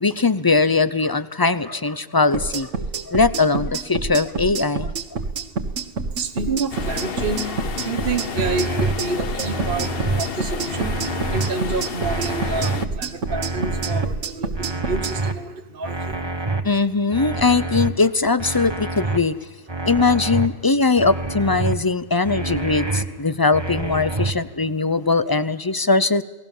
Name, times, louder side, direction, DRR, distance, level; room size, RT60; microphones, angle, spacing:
voice 1, 0.0-2.7 3.1-4.9 16.6-19.3 19.9-26.2, left 3 dB, 25° left, 15 dB, 0.6 m, -20 dB
sound 1, 2.3-15.1, right 4 dB, 75° right, 1.9 m, -28 dB
voice 2, 6.2-9.9 10.2-10.9 11.3-16.1, right 4 dB, 45° right, 5 dB, 1.3 m, -28 dB
sound 2, 6.7-12.9, left 6 dB, 50° left, 1.1 m, -31 dB
sound 3, 8.4-8.9 9.4-10.2 10.7-11.5 12.0-12.8 13.3-14.0 14.5-15.3 15.8-16.6 17.1-17.9 18.4-19.2 19.7-20.5 21.0-21.7 22.2-23.1 23.5-24.3, right 3 dB, 20° right, 1.4 m, -27 dB
29.0 x 19.0 x 7.3 m, 1.2 s
omnidirectional pair, 1.3 m